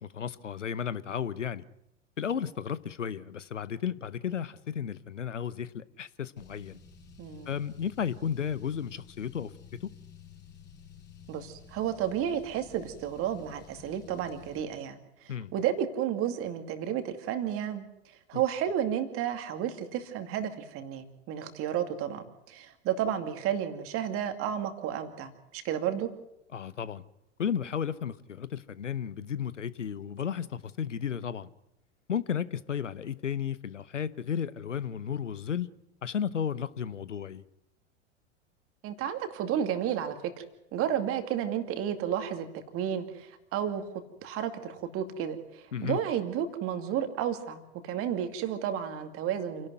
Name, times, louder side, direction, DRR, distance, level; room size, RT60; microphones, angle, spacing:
voice 1, 0.0-1.6 2.2-6.8 7.5-9.5 9.8-9.9 15.3-15.5 18.3-18.4 26.5-27.0 27.4-31.5 32.1-35.7 36.0-37.4 45.7-46.0, left 8 dB, 80° left, 0.9 m, -33 dB
Car, 6.4-14.6, left 6 dB, 30° left, 5.2 m, -52 dB
voice 2, 7.2-7.5 11.3-15.0 15.5-17.8 18.3-26.1 38.8-40.4 40.7-49.7, right 9 dB, 35° right, 2.5 m, -32 dB
28.0 x 12.0 x 9.5 m
figure-of-eight pair, 90°, 37 cm